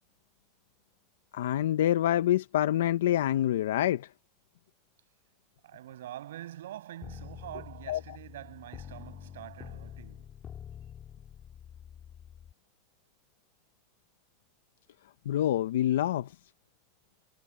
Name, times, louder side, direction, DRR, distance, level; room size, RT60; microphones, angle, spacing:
voice 1, 1.3-4.1 7.9-8.2 15.3-16.4, left 12 dB, 85° left, 0.7 m, -26 dB
voice 2, 5.6-10.3, right 13 dB, 85° right, 7.7 m, -45 dB
sound 1, 7.0-12.5, left 9 dB, 30° left, 3.3 m, -47 dB
supercardioid pair, 125°, 0 cm